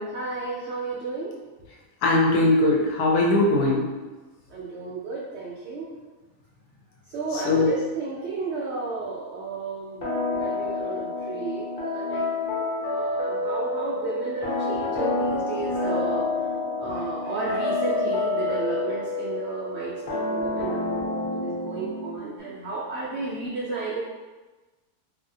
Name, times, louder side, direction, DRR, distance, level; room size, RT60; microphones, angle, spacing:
voice 1, 0.1-1.3 4.5-5.9 7.1-10.1 10.3-12.3 12.8-16.2 16.8-24.0, right 3 dB, 70° right, -5 dB, 0.6 m, -33 dB
voice 2, 2.0-3.8 7.5-7.7, left 2 dB, 85° left, -1 dB, 1.2 m, -20 dB
sound 1, 10.0-22.4, left 2 dB, 40° left, 0.8 m, -28 dB
2.7 x 2.7 x 2.6 m, 1.2 s
omnidirectional pair, 1.6 m